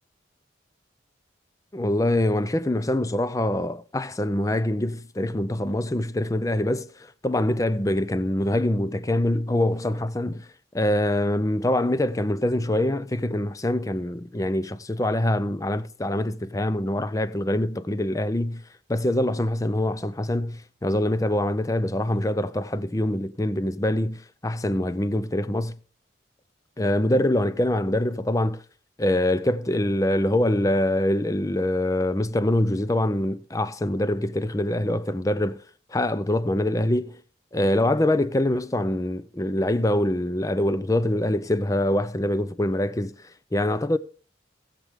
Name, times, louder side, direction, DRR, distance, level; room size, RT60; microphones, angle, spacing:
voice 1, 1.7-10.5 10.7-18.6 18.9-25.8 26.8-28.6 29.0-35.6 35.9-37.2 37.5-44.0, left 1 dB, 15° left, 0.5 m, -24 dB
18.5 x 7.5 x 3.5 m
head